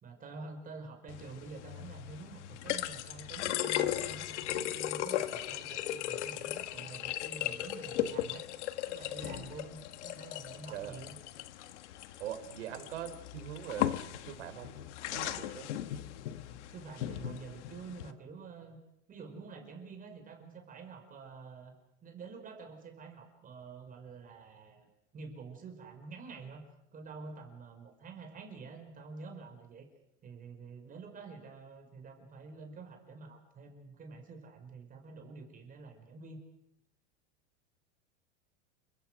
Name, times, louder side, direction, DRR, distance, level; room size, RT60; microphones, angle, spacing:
voice 1, 0.0-8.4 8.9-11.2 16.7-18.8 19.1-24.9 25.1-26.6 26.9-29.9 30.2-36.4, right 4 dB, 25° right, 5 dB, 5.2 m, -48 dB
sound 1, 1.1-18.1, left 12 dB, 75° left, 1.7 m, -37 dB
voice 2, 12.2-14.7 15.1-15.7, right 10 dB, 85° right, 8 dB, 4.8 m, -42 dB
29.5 x 24.5 x 6.4 m, 0.81 s
supercardioid pair, 145°, 36 cm